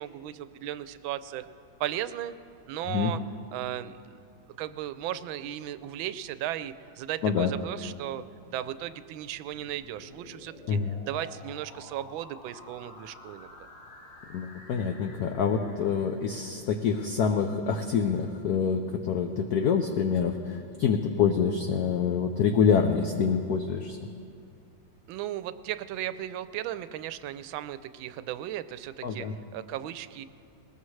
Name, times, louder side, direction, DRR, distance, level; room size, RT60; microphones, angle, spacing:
voice 1, 0.0-1.5 1.8-2.3 2.7-3.2 3.5-4.0 4.6-8.2 8.5-10.8 11.0-13.5 25.1-29.3 29.5-30.2, right 12 dB, 80° right, 13 dB, 1.3 m, -36 dB
sound 1, 9.0-16.9, left 1 dB, 50° left, 2.9 m, -51 dB
voice 2, 14.3-24.1 29.0-29.3, left 6 dB, 70° left, 6 dB, 0.9 m, -26 dB
20.5 x 19.0 x 3.2 m, 2.5 s
omnidirectional pair, 2.3 m